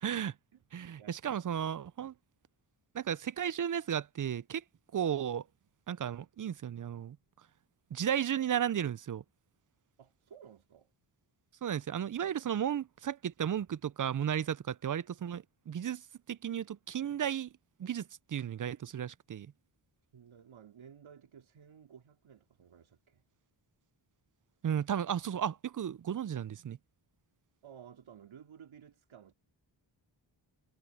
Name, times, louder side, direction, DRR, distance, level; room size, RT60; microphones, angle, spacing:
voice 1, 0.0-0.4 0.7-2.1 2.9-4.6 4.9-5.5 5.9-7.2 7.9-9.2 11.6-17.5 17.8-19.5 24.6-26.8, right 9 dB, 45° right, 0.5 m, -34 dB
voice 2, 0.5-1.4 2.0-2.2 3.2-3.3 10.0-10.9 20.1-23.2 27.6-29.3, right 8 dB, 90° right, 4.0 m, -55 dB
wide cardioid pair, 95°, 46 cm